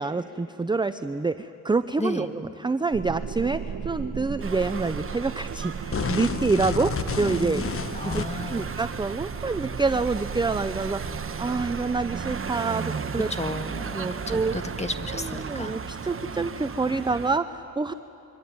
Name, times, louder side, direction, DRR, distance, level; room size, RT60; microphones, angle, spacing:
voice 1, 0.0-7.7 8.0-13.3 13.9-14.6 15.2-17.9, right 3 dB, 10° right, 11 dB, 0.6 m, -27 dB
sound 1, 2.9-12.5, right 7 dB, 65° right, 1.4 m, -37 dB
sound 2, 4.4-17.4, right 5 dB, 35° right, 1.1 m, -35 dB
sound 3, 5.9-8.6, left 5 dB, 35° left, 1.2 m, -30 dB
voice 2, 7.9-8.7 13.3-15.8, left 2 dB, 15° left, 8 dB, 1.7 m, -33 dB
26.0 x 23.5 x 9.5 m, 3.0 s
cardioid pair, 95°, 37 cm